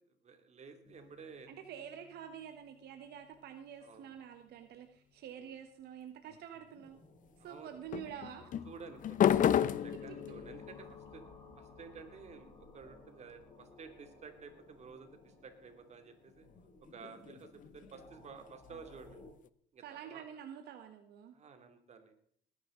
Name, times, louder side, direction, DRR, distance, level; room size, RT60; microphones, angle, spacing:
voice 1, 0.2-1.5 3.8-4.2 5.4-5.5 7.4-7.9 8.7-11.2 11.6-16.5 16.9-19.2 19.7-20.2 21.3-22.1, right 5 dB, 40° right, 6 dB, 2.7 m, -52 dB
sound 1, 0.9-2.7 6.3-6.8 7.9-14.7 16.4-19.5, left 10 dB, 50° left, 0.7 m, -36 dB
voice 2, 1.5-7.0 7.4-8.5 19.8-21.4, right 9 dB, 75° right, 6 dB, 1.4 m, -48 dB
sound 2, 6.8-19.3, left 2 dB, 25° left, 6.7 m, -58 dB
20.0 x 10.0 x 3.9 m, 0.63 s
cardioid pair, 110°, 17 cm